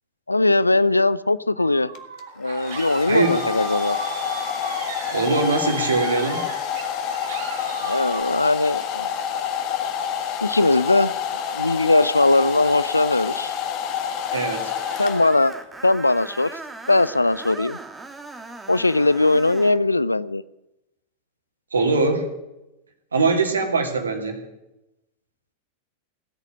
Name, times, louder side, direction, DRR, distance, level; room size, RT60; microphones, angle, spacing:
voice 1, 0.3-1.9 2.4-4.0 7.8-9.1 10.4-11.1 11.5-13.5 15.0-15.5 15.8-16.6 16.9-17.8 18.7-20.4, left 2 dB, 85° left, 19 dB, 0.5 m, -20 dB
sound 1, 1.6-8.2, right 6 dB, 60° right, 2.6 m, -36 dB
Domestic sounds home sounds, 1.9-15.7, left 8 dB, 40° left, 1.6 m, -28 dB
voice 2, 3.1-3.4 5.1-6.5 14.3-14.8 21.7-22.3 23.1-24.5, right 3 dB, 75° right, 4 dB, 2.6 m, -22 dB
Screech, 14.3-19.8, right 3 dB, 10° right, 1.6 m, -39 dB
17.5 x 8.2 x 9.4 m, 0.91 s
figure-of-eight pair, 90°, 0 cm